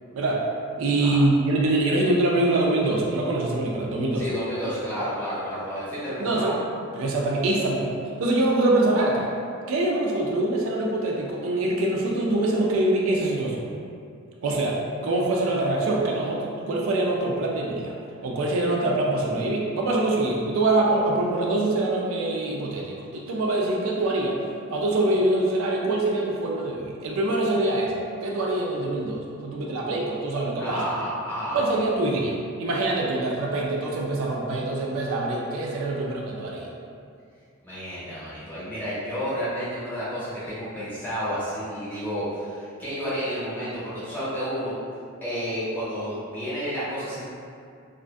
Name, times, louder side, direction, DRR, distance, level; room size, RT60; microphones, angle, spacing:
voice 1, 0.1-0.5 0.8-4.3 6.2-6.5 7.0-7.9 8.2-9.3 9.7-13.7 14.4-17.9 18.2-24.4 24.7-30.8 31.5-36.7, right 2 dB, 65° right, -2 dB, 0.3 m, -24 dB
voice 2, 4.1-6.5 30.6-31.7 37.6-44.8 45.2-47.2, equal, 10° left, -11 dB, 0.7 m, -31 dB
2.4 x 2.4 x 2.2 m, 2.3 s
head